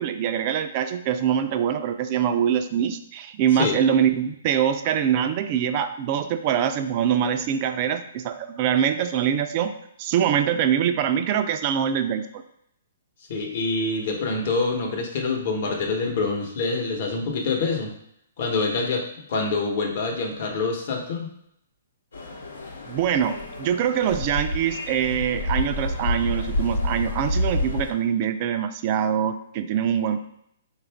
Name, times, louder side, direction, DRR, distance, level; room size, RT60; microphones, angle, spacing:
voice 1, 0.0-9.7 10.0-12.4 22.9-30.2, right 9 dB, 35° right, 9 dB, 0.3 m, -24 dB
voice 2, 13.3-17.9 18.4-21.3, left 3 dB, 50° left, 2 dB, 0.9 m, -26 dB
sound 1, 22.1-27.9, left 1 dB, 85° left, 0.9 m, -28 dB
4.3 x 2.4 x 3.4 m, 0.74 s
hypercardioid pair, 155°, 0 cm